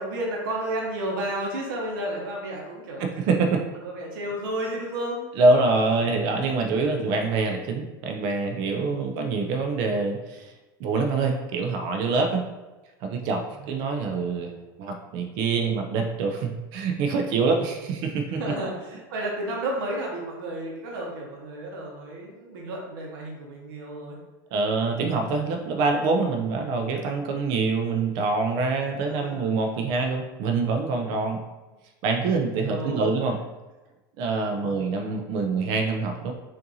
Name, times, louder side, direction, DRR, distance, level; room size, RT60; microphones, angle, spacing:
voice 1, 0.0-3.0 3.8-5.2 7.0-7.2 8.8-9.4 13.6-13.8 18.4-24.2 29.0-29.5 32.7-33.1 34.6-34.8, right 1 dB, 90° right, -2 dB, 0.9 m, -32 dB
voice 2, 3.0-3.6 5.4-10.5 10.8-12.5 13.0-14.5 14.8-18.4 24.5-31.4 32.0-33.4 34.2-36.3, right 3 dB, 40° right, 3 dB, 0.4 m, -25 dB
5.3 x 2.5 x 2.7 m, 1.1 s
supercardioid pair, 170°, 11 cm